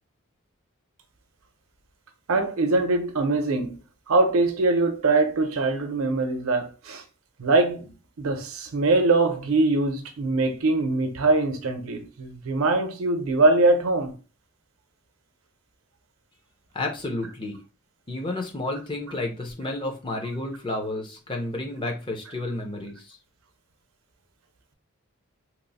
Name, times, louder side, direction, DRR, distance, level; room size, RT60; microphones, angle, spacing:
voice 1, 2.3-3.8 4.1-7.0 7.4-14.1, right 2 dB, 90° right, 0.6 m, -22 dB
voice 2, 16.7-17.6 18.1-23.2, left 2 dB, 25° left, 0.6 m, -31 dB
2.9 x 2.0 x 4.0 m
head